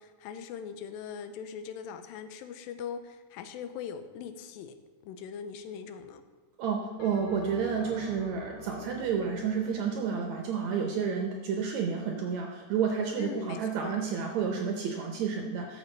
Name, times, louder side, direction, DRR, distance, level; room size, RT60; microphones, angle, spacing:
voice 1, 0.0-4.8 5.0-6.2 13.2-14.0, left 7 dB, 90° left, 9 dB, 2.3 m, -41 dB
voice 2, 6.6-15.8, right 6 dB, 75° right, 2 dB, 1.7 m, -30 dB
Bell, 7.0-11.6, left 4 dB, 70° left, 2.3 m, -48 dB
12.5 x 6.5 x 3.2 m, 1.4 s
omnidirectional pair, 4.0 m